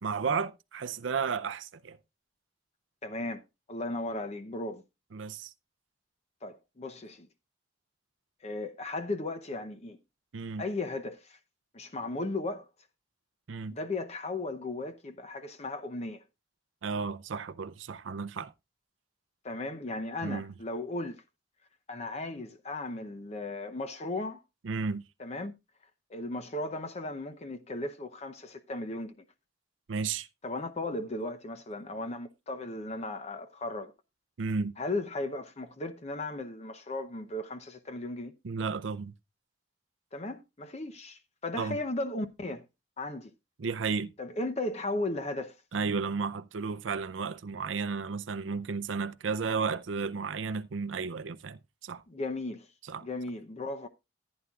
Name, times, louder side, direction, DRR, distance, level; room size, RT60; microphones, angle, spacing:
voice 1, 0.0-2.0 5.1-5.5 10.3-10.6 13.5-13.7 16.8-18.5 20.2-20.5 24.6-25.0 29.9-30.3 34.4-34.7 38.4-39.1 41.6-41.8 43.6-44.1 45.7-52.0 52.9-53.0, right 5 dB, 90° right, 0.5 m, -33 dB
voice 2, 3.0-3.4 3.7-4.8 6.4-7.3 8.4-10.0 10.6-11.4 11.7-12.7 13.7-16.2 19.4-21.2 21.9-24.4 25.2-25.5 26.1-29.2 30.4-33.9 34.8-38.3 40.1-42.6 43.0-43.3 44.2-45.6 52.1-52.7 53.0-53.9, left 2 dB, 35° left, 0.7 m, -36 dB
14.5 x 9.6 x 2.4 m
head